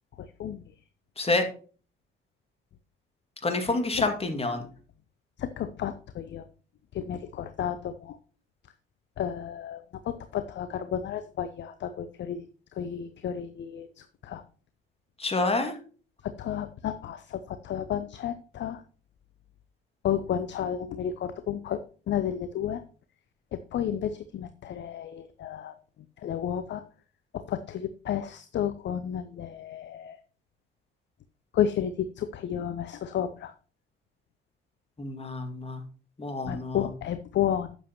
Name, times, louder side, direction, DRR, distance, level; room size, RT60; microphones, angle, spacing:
voice 1, 0.2-0.6 4.0-4.1 5.4-6.4 6.9-8.2 9.2-12.5 12.7-14.4 16.2-18.8 20.0-21.8 22.1-22.8 23.5-25.7 26.2-26.8 27.3-30.2 31.5-33.5 36.4-37.7, left 9 dB, 40° left, 12 dB, 0.7 m, -32 dB
voice 2, 1.2-1.5 3.4-4.7 15.2-15.8 35.0-35.8 36.2-36.9, left 2 dB, 20° left, 6 dB, 2.1 m, -28 dB
12.0 x 8.0 x 2.9 m, 0.39 s
figure-of-eight pair, 50°, 29 cm